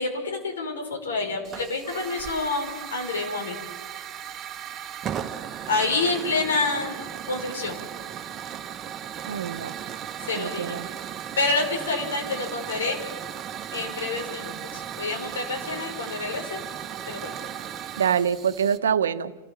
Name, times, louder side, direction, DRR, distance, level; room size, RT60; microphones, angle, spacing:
voice 1, 0.0-3.6 5.7-7.0 7.3-7.8 10.2-10.8 11.4-13.0 13.7-16.6 17.1-17.5, left 3 dB, 80° left, 2 dB, 5.3 m, -28 dB
Hiss / Fire, 1.4-18.8, right 9 dB, 30° right, 1.3 m, -36 dB
voice 2, 9.2-9.8 10.4-10.9 18.0-19.4, right 8 dB, 80° right, 13 dB, 1.0 m, -25 dB
29.5 x 14.5 x 7.5 m, 1.3 s
hypercardioid pair, 105°, 0 cm